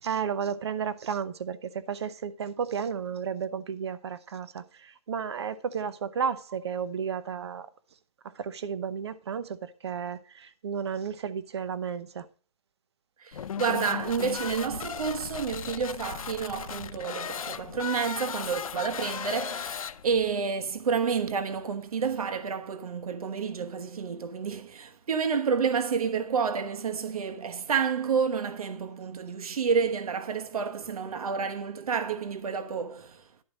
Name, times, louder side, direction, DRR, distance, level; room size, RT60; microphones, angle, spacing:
voice 1, 0.0-7.7 8.3-12.3, right 7 dB, 45° right, 0.8 m, -33 dB
voice 2, 13.2-33.2, right 6 dB, 75° right, 1.2 m, -29 dB
sound 1, 13.3-20.3, left 8 dB, 65° left, 0.6 m, -36 dB
11.5 x 4.6 x 6.3 m
hypercardioid pair, 175°, 19 cm